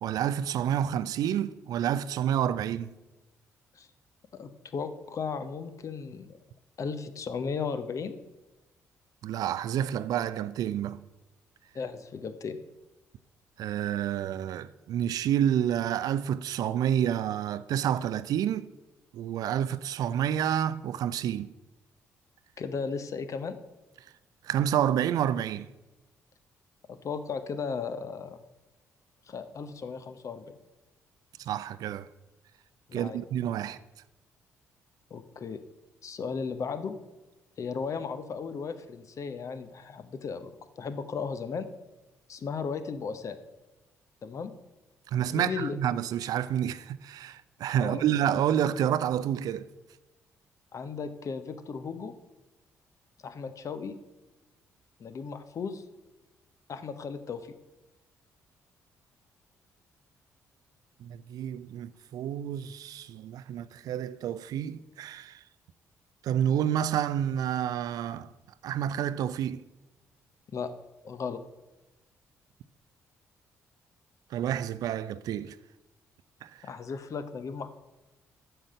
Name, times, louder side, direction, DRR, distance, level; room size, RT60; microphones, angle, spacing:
voice 1, 0.0-2.9 9.2-11.0 13.6-18.7 19.1-21.5 24.4-25.7 31.4-32.1 32.9-33.8 45.1-49.7 61.0-65.4 66.2-68.3 68.6-69.6 74.3-75.6 76.4-76.6, right 10 dB, 55° right, 0.4 m, -29 dB
voice 2, 4.3-6.4 6.8-8.2 11.7-12.6 22.6-23.6 26.9-28.4 29.3-30.6 32.9-33.2 35.1-35.6 36.0-37.0 37.6-41.7 42.3-43.4 44.2-44.5 45.3-45.8 47.8-48.0 50.7-52.1 53.2-54.0 55.0-55.8 56.7-57.5 70.5-70.7 71.0-71.4 76.6-77.7, left 5 dB, 45° left, 0.9 m, -35 dB
9.1 x 6.4 x 6.6 m
figure-of-eight pair, 40°, 8 cm